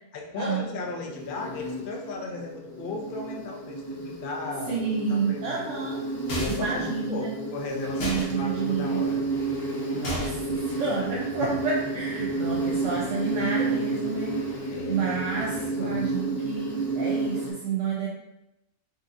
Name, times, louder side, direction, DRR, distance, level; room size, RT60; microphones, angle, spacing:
voice 1, 0.1-4.8 5.1-5.6 6.4-9.2 11.4-11.5 14.7-15.0 15.4-16.0, left 3 dB, 65° left, 1 dB, 0.5 m, -36 dB
Insect, 0.8-17.5, right 3 dB, 85° left, 1.6 m, -31 dB
voice 2, 4.7-6.0 6.5-7.4 8.0-9.1 9.9-14.4 14.9-18.1, right 5 dB, 65° right, -4 dB, 0.9 m, -30 dB
sound 1, 6.3-6.8 8.0-8.3 10.0-10.5, left 1 dB, 45° left, 1.1 m, -32 dB
sound 2, 7.8-15.8, left 3 dB, 20° left, 0.6 m, -45 dB
5.2 x 2.6 x 2.5 m, 0.89 s
omnidirectional pair, 1.6 m